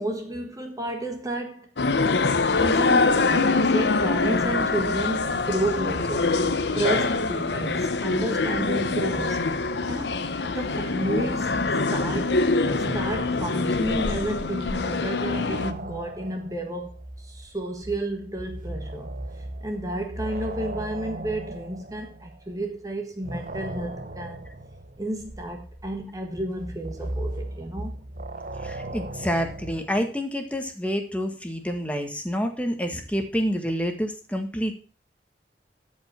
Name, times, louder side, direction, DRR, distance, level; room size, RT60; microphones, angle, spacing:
voice 1, 0.0-1.7 2.6-6.4 6.7-9.5 9.9-10.2 10.5-11.6 11.9-12.4 12.9-19.1 19.6-24.5 25.0-28.0, right 1 dB, 20° right, 1.4 m, -31 dB
sound 1, 1.8-15.7, left 3 dB, 75° left, 0.9 m, -24 dB
sound 2, 12.6-14.5 14.7-22.7 23.2-30.1, right 1 dB, 50° right, 0.9 m, -37 dB
voice 2, 28.6-34.7, equal, 10° left, 1.6 m, -28 dB
12.5 x 5.5 x 6.0 m
head